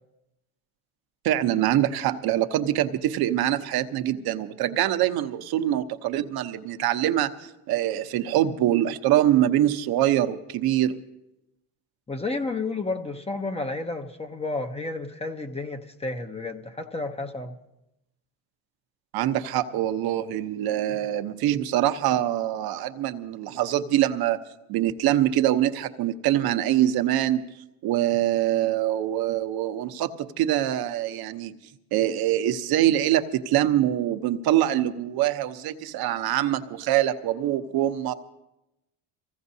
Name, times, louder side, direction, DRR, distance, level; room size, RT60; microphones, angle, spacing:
voice 1, 1.2-11.0 19.1-24.4 24.7-27.5 27.8-31.6 31.9-38.1, right 12 dB, 50° right, 9 dB, 0.9 m, -24 dB
voice 2, 12.1-17.5, left 3 dB, 15° left, 7 dB, 0.7 m, -31 dB
24.5 x 16.0 x 2.7 m, 0.93 s
supercardioid pair, 115°, 48 cm